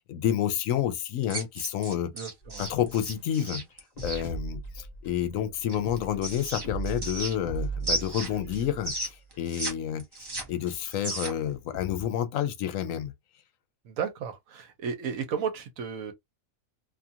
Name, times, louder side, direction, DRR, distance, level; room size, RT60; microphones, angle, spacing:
voice 1, 0.1-2.1 2.6-3.6 4.0-10.0 10.5-13.1, left 10 dB, 75° left, 0.9 m, -29 dB
sound 1, 1.2-4.2 5.7-7.6 7.8-9.7 10.0-11.5, right 1 dB, 30° right, 0.4 m, -34 dB
voice 2, 2.1-2.7 13.8-16.1, right 7 dB, 75° right, 1.1 m, -33 dB
sound 2, 2.4-9.4 9.9-10.0 10.6-12.1, right 3 dB, 35° left, 0.9 m, -39 dB
2.7 x 2.4 x 2.7 m
omnidirectional pair, 1.5 m